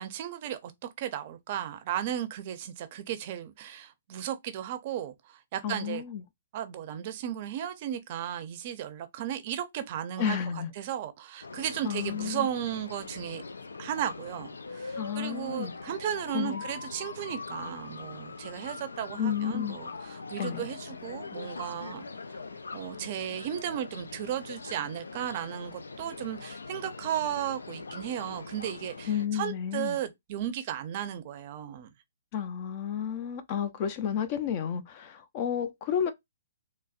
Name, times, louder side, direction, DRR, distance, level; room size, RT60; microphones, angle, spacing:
voice 1, 0.0-6.0 6.5-10.4 10.8-13.4 13.8-22.1 22.7-31.9, right 10 dB, 45° right, 0.5 m, -35 dB
voice 2, 5.6-6.2 10.2-10.7 11.8-12.5 15.0-15.7 16.3-16.6 19.2-19.8 20.4-20.6 29.1-30.0 32.3-36.1, left 8 dB, 40° left, 0.5 m, -31 dB
sound 1, 11.4-29.3, left 4 dB, 90° left, 0.4 m, -42 dB
4.0 x 2.0 x 2.4 m
hypercardioid pair, 135°, 0 cm